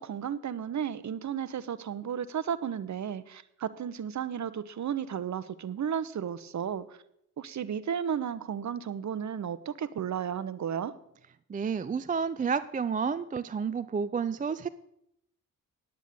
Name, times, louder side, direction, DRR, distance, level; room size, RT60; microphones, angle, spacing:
voice 1, 0.0-7.0 7.4-10.9, right 8 dB, 40° right, 15 dB, 0.9 m, -33 dB
voice 2, 11.5-14.7, right 6 dB, 20° right, 14 dB, 0.5 m, -30 dB
9.3 x 9.0 x 6.8 m, 0.76 s
hypercardioid pair, 40°, 44 cm